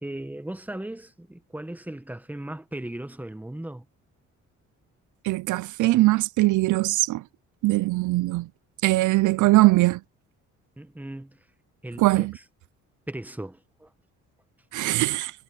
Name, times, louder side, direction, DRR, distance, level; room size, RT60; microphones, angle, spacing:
voice 1, 0.0-3.8 10.8-11.4 11.8-12.4 13.1-13.9, right 1 dB, 5° right, 1.4 m, -37 dB
voice 2, 5.2-7.2 7.6-8.5 8.8-10.0 12.0-12.3 14.7-15.3, right 19 dB, 80° right, 0.5 m, -21 dB
cardioid pair, 90°, 30 cm